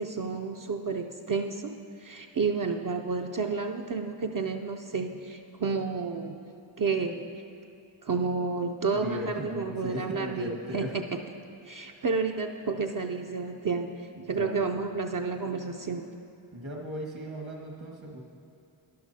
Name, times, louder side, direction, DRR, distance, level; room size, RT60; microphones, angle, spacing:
voice 1, 0.0-6.5 6.8-7.4 8.0-11.0 11.6-16.2, right 4 dB, 45° right, 2 dB, 0.5 m, -31 dB
voice 2, 8.9-10.9 14.1-14.8 16.5-18.3, equal, 75° right, -1 dB, 1.6 m, -37 dB
12.0 x 11.0 x 2.7 m, 2.6 s
wide cardioid pair, 45°, 47 cm